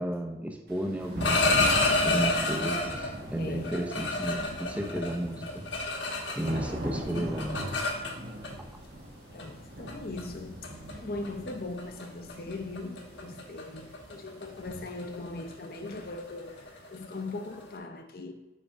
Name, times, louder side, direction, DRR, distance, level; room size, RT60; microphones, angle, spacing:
voice 1, 0.0-1.5 2.0-5.6 6.3-7.6, right 1 dB, 10° right, 0.6 m, -33 dB
Thunder / Rain, 0.7-16.5, equal, 55° right, 1.1 m, -40 dB
sound 1, 1.0-3.1 3.6-6.7 7.0-8.5 9.4-9.5 9.9-10.2 10.6-10.9 11.2-11.5 11.8-12.0 12.3-17.7, left 3 dB, 75° left, 1.2 m, -29 dB
voice 2, 3.4-3.8 9.3-16.6 16.9-18.3, left 2 dB, 55° left, 0.7 m, -39 dB
8.3 x 3.6 x 5.3 m
head